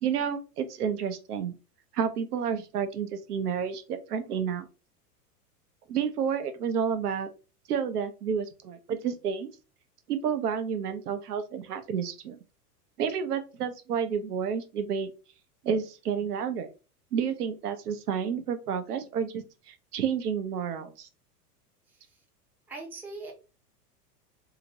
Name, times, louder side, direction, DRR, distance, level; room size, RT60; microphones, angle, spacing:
voice 1, 0.0-1.6 1.9-4.7 5.9-7.3 7.7-9.5 10.1-12.4 13.0-15.1 15.6-16.7 17.1-21.1, right 7 dB, 70° right, 9 dB, 0.7 m, -30 dB
voice 2, 21.9-22.2 22.7-23.3, right 3 dB, 5° right, 0 dB, 0.5 m, -41 dB
2.8 x 2.5 x 2.9 m, 0.32 s
figure-of-eight pair, 90°, 47 cm